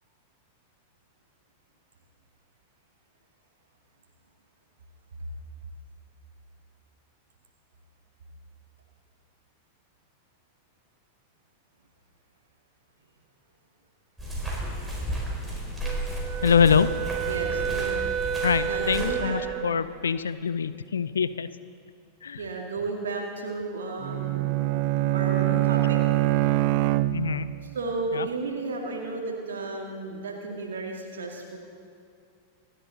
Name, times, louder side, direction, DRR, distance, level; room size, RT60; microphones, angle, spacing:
sound 1, 14.2-19.2, right 1 dB, 5° right, 4.7 m, -33 dB
Wind instrument woodwind instrument, 15.8-19.9, right 8 dB, 25° right, 0.9 m, -31 dB
voice 1, 16.4-16.9 18.4-21.5 22.2-22.4 27.1-27.5 28.2-28.3, left 6 dB, 70° left, 14 dB, 0.5 m, -24 dB
voice 2, 17.3-18.1 18.7-19.4 22.4-26.0 27.6-31.6, right 3 dB, 65° right, 0 dB, 2.0 m, -33 dB
Bowed string instrument, 24.0-27.7, right 15 dB, 45° right, 0.4 m, -24 dB
27.5 x 11.5 x 4.1 m, 2.4 s
figure-of-eight pair, 90°, 0 cm